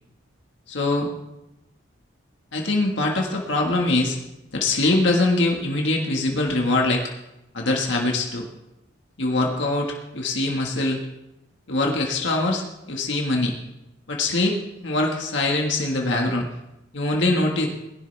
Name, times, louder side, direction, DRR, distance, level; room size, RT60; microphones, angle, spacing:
voice 1, 0.7-1.1 2.5-4.2 4.5-7.0 7.5-8.5 9.2-11.0 11.7-13.5 14.1-16.4 16.9-17.7, left 2 dB, 70° left, 0 dB, 1.6 m, -23 dB
20.5 x 11.5 x 3.4 m, 0.91 s
head